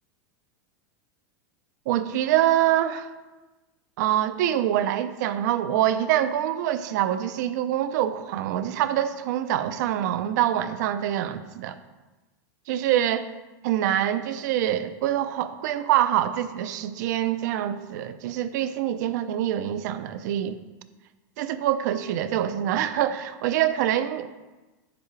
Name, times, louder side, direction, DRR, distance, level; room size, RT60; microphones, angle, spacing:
voice 1, 1.9-3.1 4.0-11.8 12.7-13.3 13.6-20.6 21.4-24.3, right 11 dB, 65° right, 11 dB, 0.6 m, -25 dB
9.2 x 6.9 x 3.3 m, 1.2 s
supercardioid pair, 160°, 10 cm